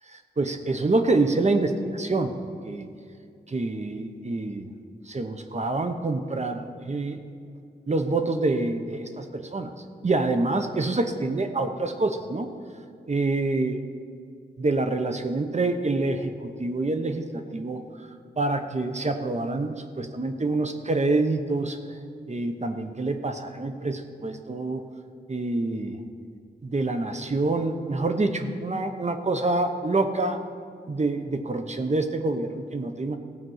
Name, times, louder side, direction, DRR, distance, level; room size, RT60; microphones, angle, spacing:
voice 1, 0.1-2.4 2.7-2.9 3.5-4.7 5.1-7.2 7.9-9.7 10.0-12.5 13.1-13.8 14.6-17.8 18.4-21.8 22.3-24.8 25.3-26.0 26.6-30.4 30.9-33.2, right 2 dB, 40° right, 7 dB, 0.9 m, -26 dB
15.5 x 5.2 x 7.9 m, 2.3 s
wide cardioid pair, 75°, 17 cm